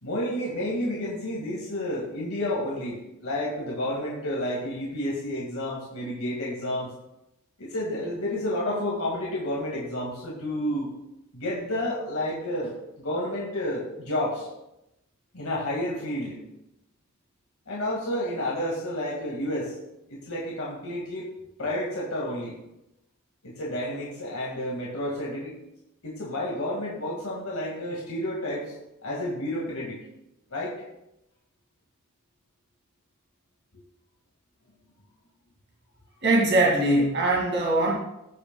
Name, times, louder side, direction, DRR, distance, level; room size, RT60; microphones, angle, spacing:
voice 1, 0.0-6.9 7.6-10.9 11.3-14.5 15.3-16.4 17.7-19.7 20.1-21.3 21.6-22.6 23.4-25.6 26.0-28.7 29.0-30.0 30.5-30.8, left 1 dB, 75° left, -4 dB, 2.1 m, -30 dB
voice 2, 36.2-37.9, right 2 dB, 55° right, -2 dB, 2.2 m, -21 dB
16.0 x 6.8 x 2.3 m, 0.88 s
head